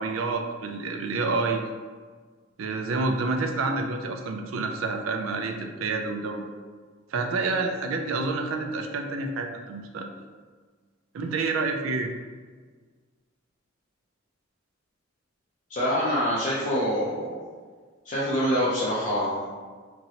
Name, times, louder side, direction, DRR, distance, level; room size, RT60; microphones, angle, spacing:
voice 1, 0.0-1.6 2.6-6.5 7.1-10.1 11.1-12.1, right 3 dB, 80° right, 5 dB, 0.4 m, -28 dB
voice 2, 15.7-17.4 18.0-19.5, equal, 35° left, -8 dB, 0.5 m, -25 dB
2.9 x 2.7 x 2.8 m, 1.5 s
head